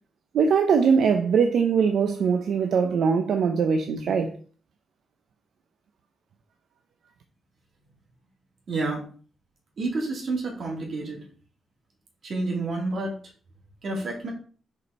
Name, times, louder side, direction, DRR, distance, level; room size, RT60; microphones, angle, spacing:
voice 1, 0.3-4.3, right 6 dB, 70° right, 0.7 m, -21 dB
voice 2, 8.7-9.0 9.8-11.2 12.2-13.1 13.8-14.3, right 2 dB, 45° right, 2.8 m, -29 dB
6.8 x 5.0 x 4.2 m
wide cardioid pair, 155°, 0 cm